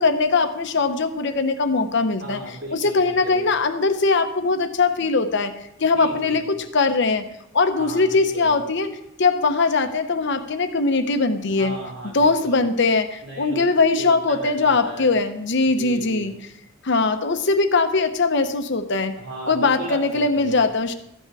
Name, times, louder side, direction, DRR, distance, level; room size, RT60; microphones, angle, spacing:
voice 1, 0.0-2.4 2.7-5.5 5.8-7.3 7.5-8.9 9.2-11.7 12.1-16.3 16.8-19.2 19.5-20.9, left 3 dB, 60° left, 8 dB, 0.8 m, -21 dB
voice 2, 2.2-3.5 5.9-6.5 7.7-8.6 11.5-12.7 13.2-13.7 14.0-15.2 15.6-16.4 19.2-20.7, right 1 dB, 85° right, -3 dB, 3.7 m, -36 dB
13.5 x 8.2 x 4.8 m, 0.81 s
head